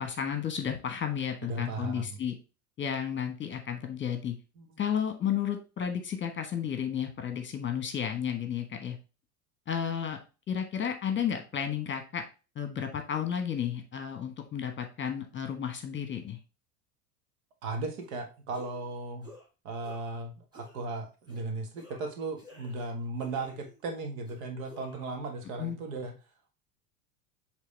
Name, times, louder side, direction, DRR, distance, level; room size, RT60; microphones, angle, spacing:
voice 1, 0.0-2.3 2.8-4.3 4.8-9.0 9.7-10.2 10.5-12.2 12.5-16.4 25.6-25.8, left 8 dB, 25° left, 6 dB, 1.3 m, -32 dB
voice 2, 1.5-2.2 4.6-4.8 17.6-19.3 19.6-26.1, right 3 dB, 60° right, 5 dB, 1.7 m, -36 dB
sound 1, 18.0-18.2 18.5-18.9 19.2-19.5 19.8-20.2 20.5-20.8 21.3-21.4 21.7-22.9 23.2-23.8 24.3-25.2, equal, 10° right, 2.7 m, -53 dB
8.2 x 3.5 x 3.4 m, 0.31 s
hypercardioid pair, 80°, 45 cm